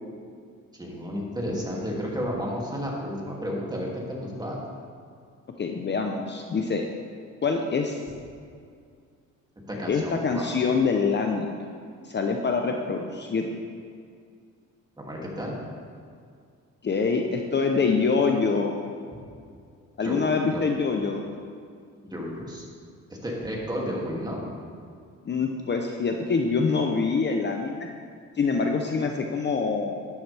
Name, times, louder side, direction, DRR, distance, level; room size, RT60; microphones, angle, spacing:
voice 1, 0.7-4.6 9.7-10.6 15.0-15.6 20.0-20.2 20.5-20.6 22.1-22.6 23.2-24.5, equal, 15° right, -3 dB, 2.7 m, -32 dB
voice 2, 5.6-6.9 7.4-8.0 9.9-11.5 12.0-13.5 16.8-18.7 20.0-21.3 25.3-27.9 28.4-30.0, left 4 dB, 35° left, 3 dB, 0.9 m, -25 dB
11.0 x 11.0 x 3.5 m, 2.2 s
cardioid pair, 90°, 30 cm